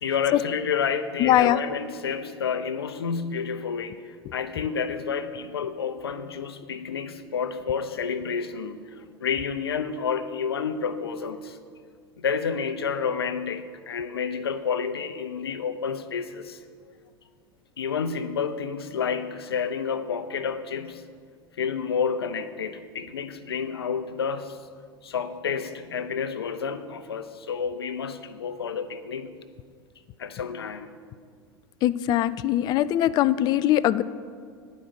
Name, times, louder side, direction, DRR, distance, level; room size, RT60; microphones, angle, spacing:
voice 1, 0.0-11.6 12.2-16.6 17.8-21.0 21.6-24.7 25.0-29.4 30.2-31.0, left 6 dB, 70° left, 10 dB, 0.6 m, -30 dB
voice 2, 1.2-1.6 31.8-34.0, left 12 dB, 30° left, 16 dB, 0.3 m, -21 dB
10.5 x 5.2 x 7.8 m, 2.1 s
figure-of-eight pair, 80°, 13 cm